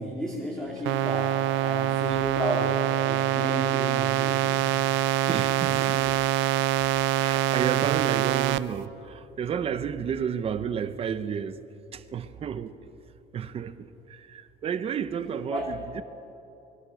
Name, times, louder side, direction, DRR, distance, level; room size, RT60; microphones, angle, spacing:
voice 1, 0.0-4.6 15.5-15.7, equal, 5° left, 2.4 m, -33 dB
sound 1, 0.9-8.6, right 12 dB, 85° right, 0.7 m, -25 dB
voice 2, 5.3-6.8 7.2-11.6 11.9-12.8 13.3-16.0, right 8 dB, 30° right, 0.9 m, -32 dB
27.5 x 22.0 x 6.4 m
cardioid pair, 180°, 19 cm